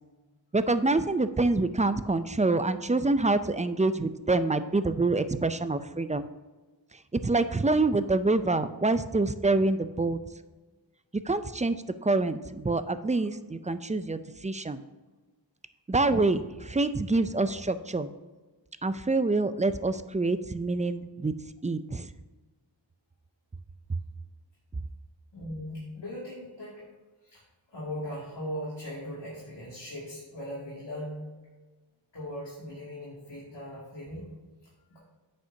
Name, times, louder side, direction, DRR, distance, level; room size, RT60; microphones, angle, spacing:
voice 1, 0.5-6.3 7.1-10.2 11.2-11.8 12.0-14.8 15.9-18.1 18.8-21.3 21.6-22.1, right 3 dB, 15° right, 12 dB, 0.3 m, -26 dB
voice 2, 25.3-26.8 27.2-27.4 27.7-31.2 32.1-34.3 34.9-35.0, equal, 65° left, -8 dB, 2.4 m, -39 dB
9.4 x 6.7 x 2.7 m, 1.2 s
wide cardioid pair, 65°, 46 cm